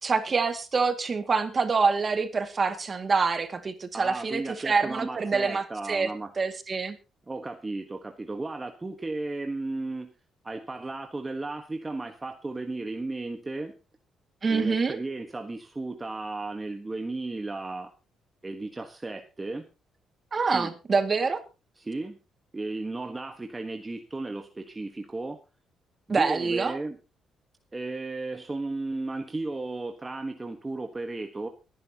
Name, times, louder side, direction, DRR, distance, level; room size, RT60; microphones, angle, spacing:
voice 1, 0.0-6.1 6.4-7.0 14.4-15.0 20.3-21.4 26.1-26.8, right 4 dB, 35° right, 8 dB, 2.1 m, -26 dB
voice 2, 3.9-6.3 7.3-10.1 10.4-13.7 14.5-17.9 18.4-19.7 20.5-20.7 21.8-22.2 22.5-25.4 26.1-27.0 27.7-31.5, right 2 dB, 20° right, 5 dB, 1.3 m, -34 dB
22.5 x 10.5 x 2.9 m, 0.29 s
cardioid pair, 90°, 0 cm